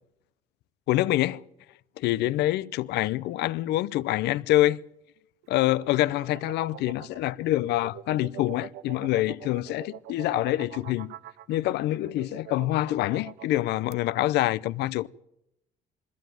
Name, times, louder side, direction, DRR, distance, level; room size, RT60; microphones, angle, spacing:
voice 1, 0.9-1.4 2.0-4.8 5.5-11.1 11.5-15.1, left 15 dB, 80° left, 0.7 m, -26 dB
sound 1, 5.4-13.9, right 14 dB, 75° right, 0.9 m, -45 dB
21.5 x 15.0 x 9.2 m
cardioid pair, 110°, 17 cm